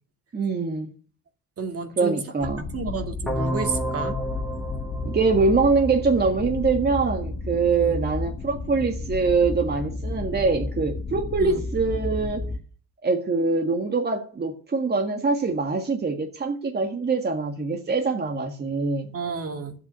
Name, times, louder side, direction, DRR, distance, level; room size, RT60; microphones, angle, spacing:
voice 1, 0.3-0.9 2.0-2.7 5.1-12.5 13.0-19.1, right 4 dB, 35° right, 1.8 m, -24 dB
voice 2, 1.6-2.2 2.7-4.2 7.7-8.0 11.4-11.6 19.1-19.7, right 4 dB, 50° right, 2.4 m, -31 dB
sound 1, 2.4-12.6, left 3 dB, 40° left, 1.8 m, -32 dB
sound 2, 3.3-6.2, equal, ahead, 2.1 m, -31 dB
11.0 x 8.2 x 8.2 m
cardioid pair, 90°, 30 cm